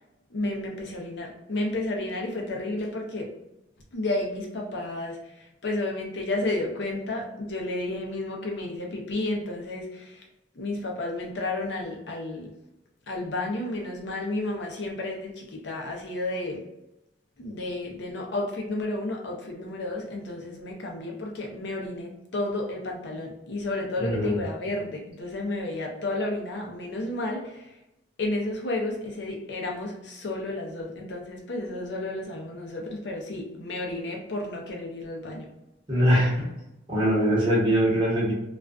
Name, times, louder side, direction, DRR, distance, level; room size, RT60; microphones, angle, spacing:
voice 1, 0.3-3.3 3.9-10.2 10.6-12.5 13.1-16.6 17.4-27.8 28.2-35.5, left 2 dB, 65° left, 0 dB, 0.6 m, -32 dB
voice 2, 24.0-24.4 35.9-36.5 36.9-38.3, equal, 25° right, -6 dB, 0.9 m, -22 dB
2.4 x 2.2 x 2.3 m, 0.92 s
head